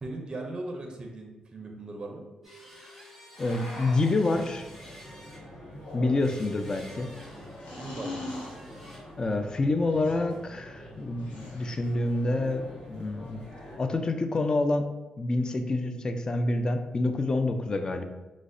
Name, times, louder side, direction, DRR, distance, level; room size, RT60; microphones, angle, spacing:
voice 1, 0.0-2.3 7.7-8.3, right 2 dB, 35° right, 2 dB, 0.5 m, -38 dB
sound 1, 2.4-5.7 6.2-9.0, equal, ahead, 1.1 m, -50 dB
sound 2, 3.3-4.2 5.7-6.5 7.6-8.6 9.8-10.3 11.2-11.9, left 2 dB, 80° left, 0.8 m, -41 dB
voice 2, 3.4-4.7 5.9-7.1 9.2-13.4 13.8-14.9 15.2-18.0, left 2 dB, 35° left, 7 dB, 0.3 m, -27 dB
sound 3, 4.2-13.8, left 1 dB, 60° left, 1.4 m, -46 dB
4.9 x 2.0 x 2.5 m, 1.1 s
cardioid pair, 90°, 2 cm